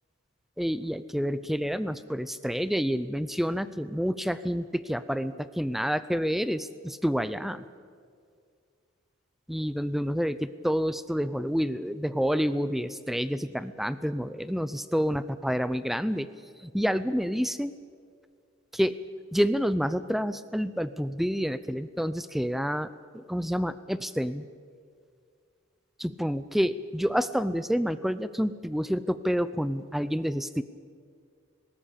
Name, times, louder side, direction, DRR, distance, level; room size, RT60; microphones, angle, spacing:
voice 1, 0.6-7.6 9.5-16.3 16.6-17.7 18.7-19.0 19.3-24.5 26.0-30.6, equal, ahead, 14 dB, 0.5 m, -28 dB
19.0 x 17.5 x 8.5 m, 2.1 s
head